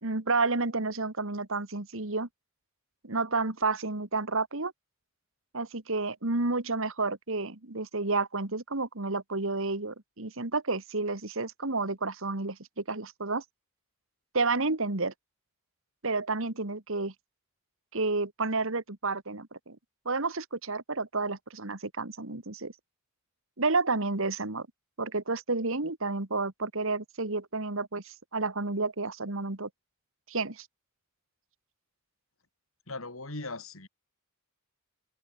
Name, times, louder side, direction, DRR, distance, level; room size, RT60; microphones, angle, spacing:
voice 1, 0.0-2.3 3.0-4.7 5.5-13.4 14.3-15.1 16.0-17.1 17.9-19.8 20.1-22.7 23.6-24.7 25.0-29.7 30.3-30.7, right 3 dB, 65° right, 2.1 m, -30 dB
voice 2, 32.9-33.9, left 2 dB, 70° left, 4.4 m, -39 dB
open air
head